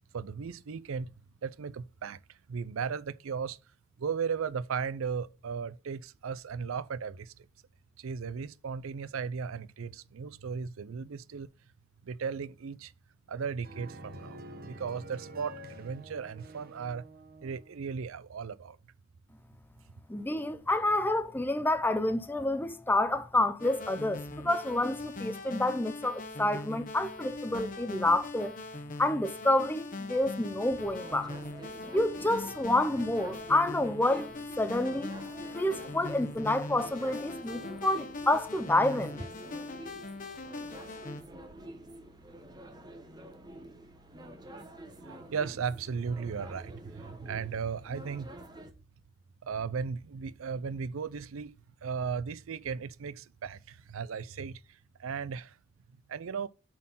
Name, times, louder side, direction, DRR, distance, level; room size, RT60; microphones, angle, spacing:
voice 1, 0.1-1.1 1.4-2.2 2.5-3.6 4.0-7.5 8.0-11.5 12.0-12.9 13.3-17.0 17.4-18.8 45.0-48.3 49.4-51.5 51.8-54.6 55.0-55.6 56.1-56.5, right 6 dB, 80° right, 0.5 m, -36 dB
sound 1, 13.6-17.8, right 1 dB, 45° right, 1.1 m, -48 dB
voice 2, 20.1-28.5 29.0-31.3 31.9-34.3 34.6-35.2 35.5-39.2, left 1 dB, 10° left, 0.5 m, -28 dB
sound 2, 23.6-41.2, left 2 dB, 40° left, 0.9 m, -41 dB
sound 3, 30.7-48.7, right 1 dB, 20° right, 1.0 m, -48 dB
7.3 x 4.4 x 5.5 m
head